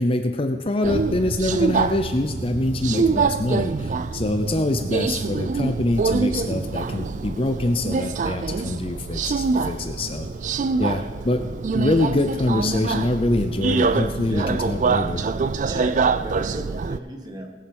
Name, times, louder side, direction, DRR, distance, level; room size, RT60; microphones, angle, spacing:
voice 1, 0.0-10.3 10.8-15.2, left 2 dB, 30° left, 7 dB, 0.5 m, -24 dB
Subway metro underground, 0.8-17.0, right 4 dB, 40° right, 0.3 m, -25 dB
voice 2, 10.7-11.3 14.3-14.6 15.6-17.5, right 1 dB, 20° right, 2 dB, 1.4 m, -35 dB
18.5 x 7.6 x 5.3 m, 1.5 s
head